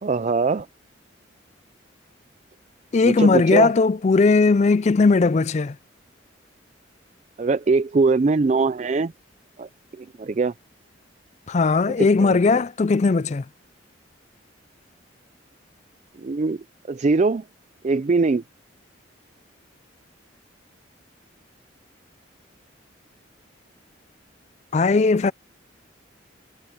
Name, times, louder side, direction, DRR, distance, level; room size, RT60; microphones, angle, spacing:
voice 1, 0.0-0.7 3.0-3.7 7.4-9.1 9.6-10.5 12.0-12.6 16.2-17.4 17.8-18.4, right 4 dB, 35° right, 0.4 m, -22 dB
voice 2, 2.9-5.8 11.5-13.4 24.7-25.3, left 4 dB, 35° left, 0.4 m, -18 dB
head